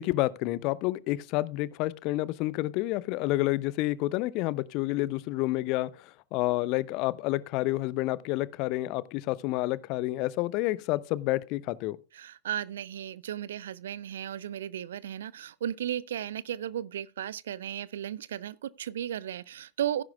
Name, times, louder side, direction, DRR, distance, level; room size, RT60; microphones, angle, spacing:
voice 1, 0.0-12.0, left 18 dB, 40° left, 0.5 m, -29 dB
voice 2, 12.1-20.0, right 10 dB, 60° right, 0.5 m, -35 dB
16.0 x 10.5 x 2.3 m
figure-of-eight pair, 90°, 0 cm